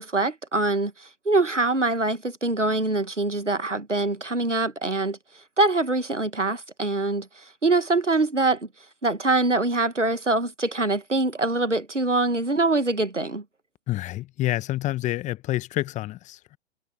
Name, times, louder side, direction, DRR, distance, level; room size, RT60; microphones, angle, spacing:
voice 1, 0.0-5.2 5.6-7.3 7.6-8.7 9.0-13.4, right 2 dB, 90° right, 1.8 m, -24 dB
voice 2, 13.9-16.6, left 15 dB, 20° left, 1.2 m, -28 dB
figure-of-eight pair, 115°, 35 cm